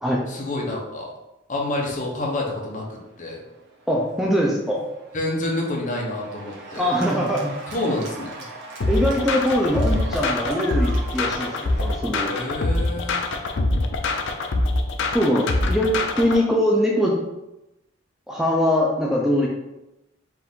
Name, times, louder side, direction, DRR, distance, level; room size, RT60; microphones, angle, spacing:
voice 1, 0.3-1.1 1.5-3.4 5.1-6.9 7.7-8.3 12.3-13.3, left 2 dB, 40° left, -2 dB, 0.9 m, -28 dB
Cheering / Applause, 2.4-12.0, right 2 dB, 60° right, 0.8 m, -40 dB
voice 2, 3.9-4.8 6.8-7.5 8.9-12.3 15.1-17.2 18.3-19.5, equal, ahead, -3 dB, 0.4 m, -22 dB
sound 1, 8.8-16.4, left 2 dB, 65° left, 0.5 m, -24 dB
4.5 x 2.6 x 3.6 m, 0.93 s
head